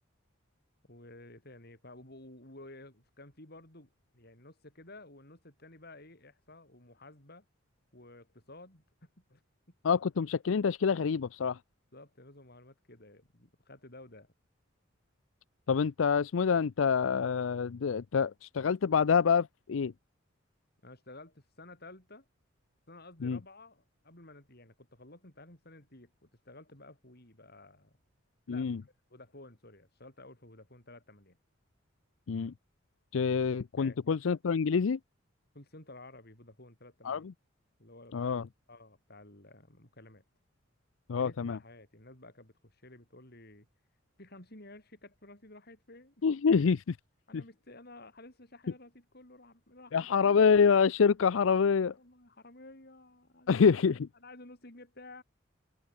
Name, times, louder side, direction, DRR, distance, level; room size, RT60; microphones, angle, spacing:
voice 1, 0.9-7.4 7.9-8.8 9.2-9.4 11.9-14.3 20.8-22.3 22.9-28.0 28.5-28.7 29.1-31.4 33.8-34.0 35.5-37.3 37.8-40.2 41.2-43.7 44.2-46.2 47.3-50.5 51.9-53.8 54.2-55.2, left 2 dB, 55° left, 7.9 m, -53 dB
voice 2, 9.8-11.6 15.7-19.9 23.2-23.4 28.5-28.8 32.3-32.5 33.1-35.0 37.0-37.2 38.1-38.4 41.1-41.6 46.2-47.0 47.3-47.4 49.9-51.9 53.5-53.9, left 6 dB, 90° left, 0.5 m, -26 dB
head